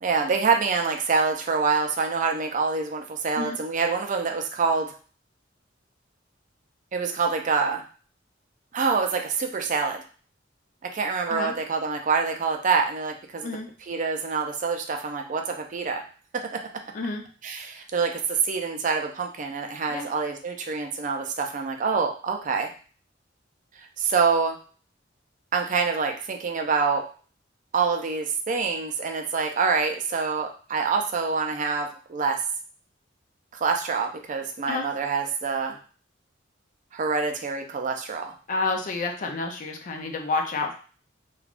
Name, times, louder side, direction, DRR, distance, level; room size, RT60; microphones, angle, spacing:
voice 1, 0.0-4.9 6.9-7.8 8.7-10.0 10.9-13.5 13.9-16.0 17.4-22.7 24.0-24.6 25.5-27.0 27.7-32.4 33.6-35.8 36.9-38.3, right 5 dB, 40° right, 4 dB, 0.4 m, -26 dB
voice 2, 38.5-40.7, left 3 dB, 45° left, 4 dB, 0.5 m, -29 dB
3.3 x 2.3 x 2.4 m, 0.40 s
head